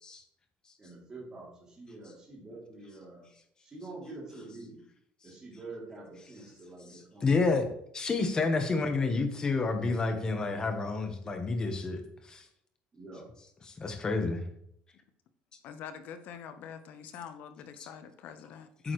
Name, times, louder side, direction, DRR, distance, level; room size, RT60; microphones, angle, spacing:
voice 1, 0.8-3.3 3.6-4.8 5.2-7.4 12.9-13.3, right 2 dB, 20° right, -5 dB, 3.0 m, -46 dB
voice 2, 7.2-7.7 7.9-12.0 12.3-12.4 13.8-14.4 17.8-17.9 18.8-18.9, left 3 dB, 25° left, 6 dB, 1.2 m, -29 dB
voice 3, 15.6-18.7, left 8 dB, 60° left, 10 dB, 0.8 m, -45 dB
8.8 x 6.3 x 3.2 m, 0.72 s
cardioid pair, 140°, 3 cm